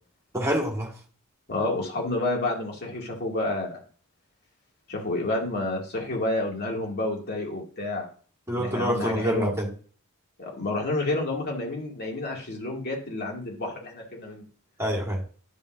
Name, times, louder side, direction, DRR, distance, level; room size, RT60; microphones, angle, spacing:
voice 1, 0.3-0.9 8.5-9.7 14.8-15.2, equal, 15° right, -1 dB, 1.8 m, -26 dB
voice 2, 1.5-3.8 4.9-8.1 8.6-9.5 10.4-14.4, left 2 dB, 50° left, -1 dB, 2.3 m, -29 dB
11.0 x 5.3 x 2.6 m, 0.41 s
head